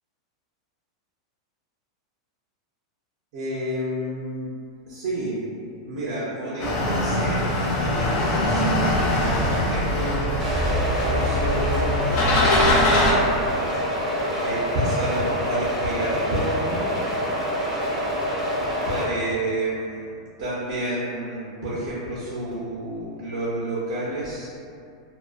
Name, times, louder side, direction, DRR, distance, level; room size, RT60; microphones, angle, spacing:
voice 1, 3.3-4.5 4.9-5.4 5.8-13.6 14.3-16.9 18.9-20.1 20.4-24.5, right 1 dB, 60° right, -10 dB, 0.6 m, -30 dB
sound 1, 6.6-13.1, left 1 dB, 45° left, 0.5 m, -22 dB
sound 2, 10.4-19.0, equal, 15° right, 0.6 m, -26 dB
2.4 x 2.2 x 2.4 m, 2.4 s
supercardioid pair, 150°, 3 cm